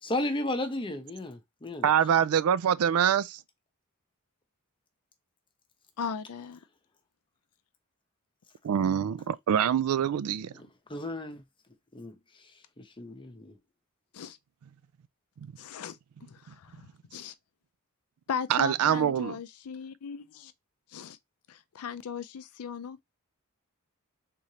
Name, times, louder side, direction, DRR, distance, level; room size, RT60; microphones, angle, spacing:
voice 1, 0.0-1.9 10.6-11.4 11.9-12.2 12.8-13.6, left 1 dB, 20° left, 0.8 m, -34 dB
voice 2, 1.8-3.4 8.6-10.5 15.4-15.5 18.5-19.4, right 8 dB, 75° right, 0.4 m, -25 dB
voice 3, 6.0-6.6 14.1-14.4 15.6-17.3 18.3-20.5 20.9-21.2 21.5-23.0, left 7 dB, 75° left, 0.4 m, -38 dB
3.8 x 3.2 x 2.8 m
head